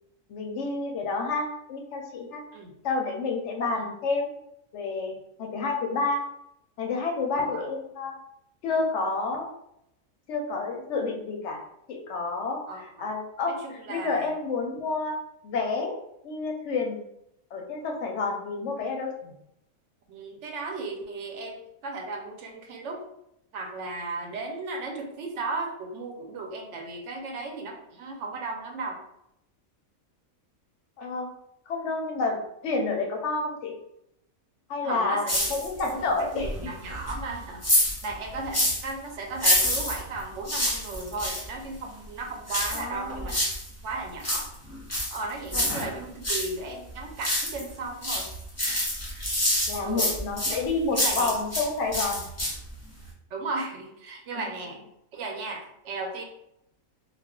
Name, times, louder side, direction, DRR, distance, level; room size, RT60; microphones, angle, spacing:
voice 1, 0.3-2.4 2.8-4.3 4.7-5.1 5.4-6.2 6.8-8.2 8.6-9.5 10.3-11.6 11.9-15.1 15.4-16.0 16.2-17.0 17.5-19.4 31.0-31.3 31.7-33.7 34.7-35.2 35.5-36.7 42.7-43.3 45.5-45.8 49.7-52.3, left 3 dB, 65° left, 2 dB, 0.8 m, -29 dB
voice 2, 12.7-13.1 13.5-14.3 20.1-23.0 23.5-29.0 34.8-35.5 35.9-37.8 38.0-43.4 43.8-44.5 45.1-48.3 49.8-50.1 50.5-50.6 50.9-51.3 53.3-54.8 55.1-56.2, right 3 dB, 65° right, 2 dB, 0.9 m, -35 dB
sound 1, 35.3-36.0 36.4-38.9 39.3-41.5 42.5-43.7 44.0-46.5 46.9-47.7 48.0-51.7 51.9-52.7 53.1-53.2, left 1 dB, 15° left, 0.6 m, -27 dB
2.4 x 2.3 x 3.5 m, 0.79 s
omnidirectional pair, 1.5 m